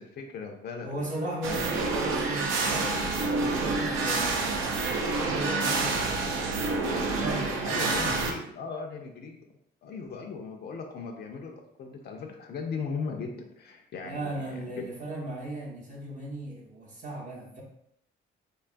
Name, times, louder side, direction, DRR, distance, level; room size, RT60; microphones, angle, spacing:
voice 1, 0.0-1.1 1.5-1.8 7.7-9.5 9.8-14.9, left 5 dB, 55° left, 2 dB, 0.4 m, -38 dB
voice 2, 0.8-6.2 6.9-8.0 14.0-17.6, right 1 dB, 40° right, -2 dB, 0.6 m, -37 dB
sound 1, 1.4-8.3, right 3 dB, 85° right, 0.4 m, -28 dB
2.8 x 2.2 x 2.5 m, 0.75 s
cardioid pair, 90°, 20 cm